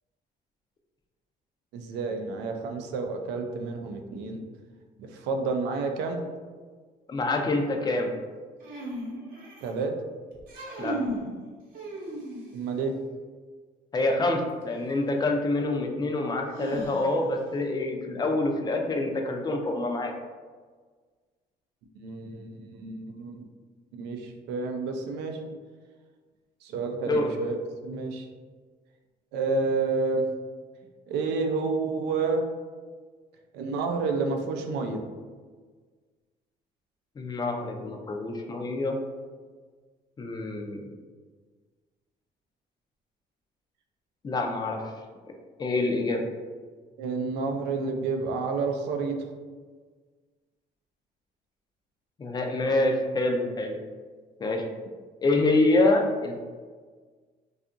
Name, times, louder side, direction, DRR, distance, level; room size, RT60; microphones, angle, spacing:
voice 1, 1.7-4.4 5.0-6.2 9.6-9.9 12.5-12.9 22.0-23.5 24.0-25.4 26.6-27.6 27.8-28.3 29.3-30.2 31.1-32.4 33.5-35.0 47.0-49.2, right 4 dB, 85° right, 4 dB, 0.4 m, -29 dB
voice 2, 7.1-8.1 10.8-11.0 13.9-20.1 27.0-27.4 37.2-39.0 40.2-40.9 44.2-44.8 45.6-46.2 52.2-53.8 54.4-54.6 55.2-56.4, left 2 dB, 25° left, 2 dB, 0.4 m, -26 dB
sound 1, 8.6-9.8 10.4-11.3 11.7-12.6 14.6-14.7 16.5-17.4, right 1 dB, 60° right, 0.8 m, -35 dB
2.7 x 2.3 x 2.5 m, 1.5 s
cardioid pair, 110°, 17 cm